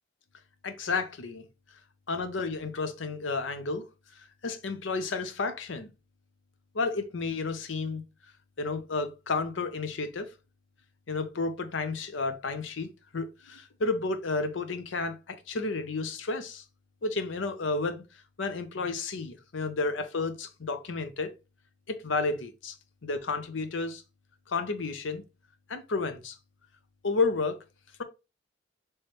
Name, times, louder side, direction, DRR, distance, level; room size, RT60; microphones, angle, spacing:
voice 1, 0.6-1.4 2.1-3.8 4.4-5.9 6.7-8.0 8.6-10.3 11.1-16.6 17.0-18.0 18.4-21.3 21.9-22.7 23.0-24.0 24.5-25.2 25.7-26.4 27.0-27.6, left 3 dB, 75° left, 0.7 m, -31 dB
4.6 x 3.1 x 3.1 m
head